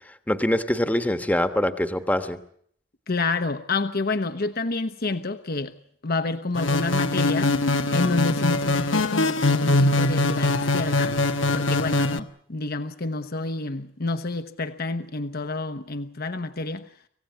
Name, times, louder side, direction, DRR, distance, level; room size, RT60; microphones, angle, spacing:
voice 1, 0.1-2.4, left 1 dB, 10° left, 9 dB, 1.3 m, -24 dB
voice 2, 3.1-5.8 6.0-7.5 7.9-11.2 11.5-16.8, left 3 dB, 50° left, 9 dB, 1.1 m, -28 dB
sound 1, 6.5-12.2, left 2 dB, 75° left, 1.3 m, -22 dB
26.0 x 16.5 x 9.6 m, 0.67 s
head